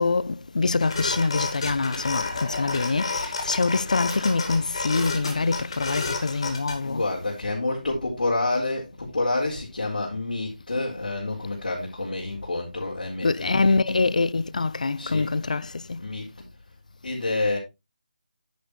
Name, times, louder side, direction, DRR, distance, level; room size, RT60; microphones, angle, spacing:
voice 1, 0.0-7.1 13.2-16.0, left 3 dB, 60° left, 0.6 m, -25 dB
sound 1, 0.8-6.8, left 3 dB, 40° left, 2.0 m, -31 dB
voice 2, 6.8-14.1 14.9-15.3 16.0-16.3 17.0-17.6, left 2 dB, 75° left, 4.1 m, -28 dB
10.0 x 7.4 x 3.2 m
figure-of-eight pair, 175°, 5 cm